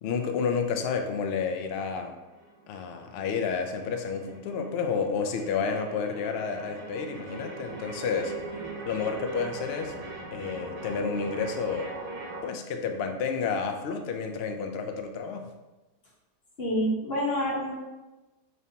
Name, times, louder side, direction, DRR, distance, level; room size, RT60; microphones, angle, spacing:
voice 1, 0.0-2.1 2.7-8.3 8.9-9.9 10.3-11.9 12.4-15.5, left 5 dB, 85° left, 5 dB, 0.5 m, -30 dB
sound 1, 1.1-12.4, right 2 dB, 65° right, 1.4 m, -41 dB
voice 2, 16.6-17.7, equal, 45° left, -5 dB, 1.1 m, -27 dB
5.1 x 3.2 x 2.7 m, 1.1 s
omnidirectional pair, 1.6 m